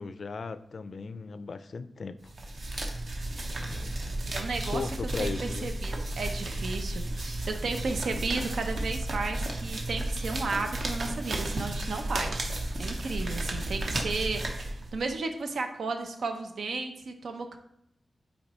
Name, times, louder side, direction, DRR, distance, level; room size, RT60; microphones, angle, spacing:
voice 1, 0.0-2.3 3.6-3.9 4.6-5.7, left 4 dB, 50° left, 12 dB, 0.3 m, -37 dB
sound 1, 2.3-15.1, right 1 dB, 55° right, 0.8 m, -33 dB
voice 2, 4.3-4.8 5.2-17.6, right 3 dB, 85° right, 5 dB, 0.7 m, -34 dB
8.5 x 4.3 x 3.0 m, 0.77 s
wide cardioid pair, 170°, 0 cm